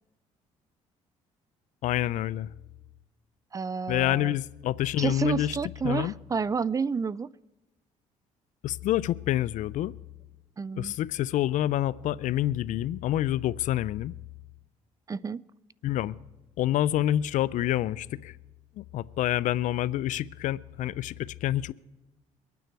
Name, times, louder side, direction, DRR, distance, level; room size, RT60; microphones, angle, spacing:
voice 1, 1.8-2.5 3.9-5.6 5.8-6.1 8.6-9.9 10.8-14.1 15.8-16.2 16.6-18.4 18.8-21.7, left 13 dB, 65° left, 0.4 m, -27 dB
voice 2, 3.5-4.3 5.0-7.3 10.6-10.9 15.1-15.4, right 5 dB, 25° right, 0.4 m, -30 dB
23.0 x 9.3 x 4.6 m
supercardioid pair, 80°, 14 cm